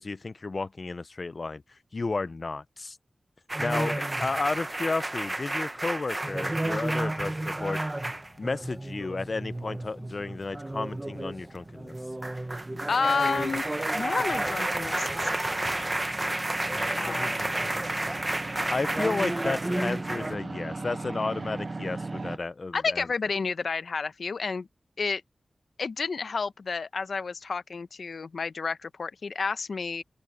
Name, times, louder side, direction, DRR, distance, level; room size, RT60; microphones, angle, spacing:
voice 1, 0.0-1.6 1.9-3.0 3.6-7.8 8.4-11.9 16.7-18.2 18.5-23.1, left 3 dB, 50° left, 0.6 m, -33 dB
sound 1, 3.5-20.4, right 1 dB, 25° right, 1.1 m, -31 dB
sound 2, 7.0-20.6, left 2 dB, 30° left, 3.6 m, -58 dB
sound 3, 8.1-22.4, right 3 dB, 45° right, 0.9 m, -41 dB
voice 2, 12.9-13.6 13.9-15.8 17.0-17.4 22.7-24.7 25.0-25.2 25.8-30.0, left 4 dB, 75° left, 0.9 m, -30 dB
open air
wide cardioid pair, 75°, 0 cm